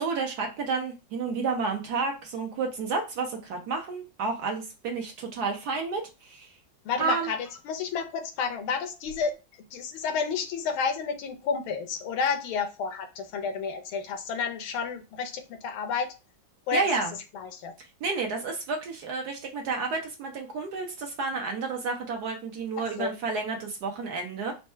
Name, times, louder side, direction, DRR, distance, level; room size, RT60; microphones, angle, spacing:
voice 1, 0.0-6.5 7.0-7.3 16.7-17.1 18.0-24.5, right 4 dB, 65° right, 3 dB, 1.0 m, -31 dB
voice 2, 6.8-9.3 9.7-16.1 16.7-16.9 17.3-17.7 23.0-23.1, left 5 dB, 85° left, 6 dB, 1.6 m, -30 dB
4.3 x 2.2 x 4.3 m, 0.29 s
omnidirectional pair, 2.2 m